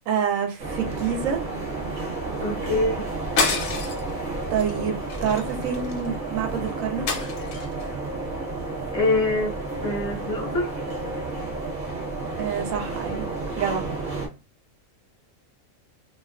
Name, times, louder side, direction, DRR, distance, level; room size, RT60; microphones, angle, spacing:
voice 1, 0.1-1.4 4.5-7.3 12.4-13.3 13.6-13.8, right 7 dB, 75° right, 0.9 m, -27 dB
sound 1, 0.6-14.3, right 3 dB, 45° right, 0.7 m, -31 dB
voice 2, 2.4-3.0 8.9-9.5 9.8-10.8, left 2 dB, 35° left, 0.6 m, -24 dB
sound 2, 3.4-4.1 4.6-4.8 5.1-6.1 7.1-7.8, left 5 dB, 70° left, 0.8 m, -27 dB
2.3 x 2.3 x 2.3 m
omnidirectional pair, 1.5 m